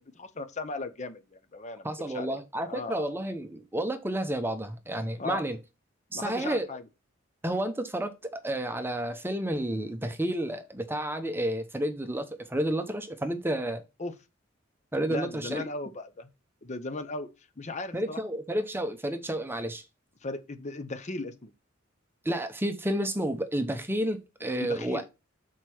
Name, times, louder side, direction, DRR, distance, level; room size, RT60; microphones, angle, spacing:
voice 1, 0.0-1.9 2.1-2.4 2.6-3.1 5.2-5.4 6.1-6.8 14.0-14.1 15.1-16.3 16.6-17.3 17.6-18.2 20.2-21.5 24.6-25.0, left 2 dB, 35° left, 0.7 m, -37 dB
voice 2, 1.8-5.6 6.1-6.7 7.4-13.8 14.9-15.7 17.9-19.8 22.2-25.0, right 1 dB, 10° right, 0.7 m, -31 dB
6.6 x 4.6 x 4.3 m
head